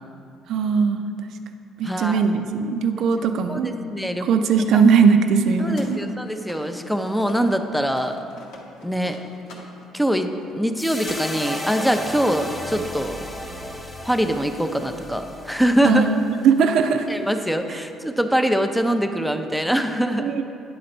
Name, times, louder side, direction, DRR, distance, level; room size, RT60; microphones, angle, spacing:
voice 1, 0.5-1.0 1.8-3.7 4.2-6.0 15.8-16.2 16.4-17.1 20.2-20.4, right 6 dB, 65° right, 7 dB, 0.4 m, -19 dB
voice 2, 1.8-2.2 3.5-4.3 4.7-4.8 5.6-8.2 8.8-9.2 9.9-13.2 14.0-16.1 17.1-20.4, equal, ahead, 6 dB, 0.5 m, -23 dB
sound 1, 5.1-7.6 7.8-11.2, left 3 dB, 75° left, 1.0 m, -45 dB
sound 2, 10.8-17.2, left 1 dB, 20° left, 0.8 m, -34 dB
9.3 x 3.9 x 4.4 m, 2.5 s
supercardioid pair, 70°, 0 cm